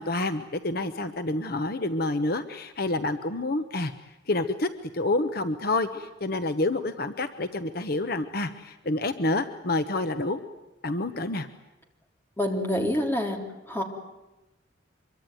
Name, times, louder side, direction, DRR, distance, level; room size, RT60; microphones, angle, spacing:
voice 1, 0.0-3.9 4.3-10.4 10.8-11.5, left 2 dB, 55° left, 10 dB, 1.1 m, -28 dB
voice 2, 12.4-13.4 13.7-13.8, left 1 dB, 10° left, 2 dB, 3.5 m, -26 dB
25.0 x 23.5 x 9.3 m, 1.0 s
head